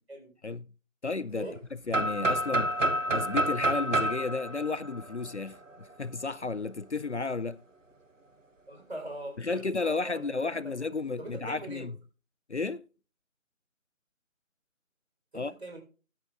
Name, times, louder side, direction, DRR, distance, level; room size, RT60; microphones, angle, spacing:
voice 1, 1.0-1.5 1.9-2.8 3.1-7.6 9.4-11.9 12.5-12.8 15.3-15.5, left 3 dB, 60° left, 0.5 m, -33 dB
sound 1, 1.9-5.7, right 1 dB, 70° right, 1.2 m, -29 dB
voice 2, 8.7-10.7 11.2-11.9 15.3-15.8, right 1 dB, 50° right, 4.0 m, -42 dB
16.0 x 8.5 x 2.4 m
figure-of-eight pair, 170°, 40 cm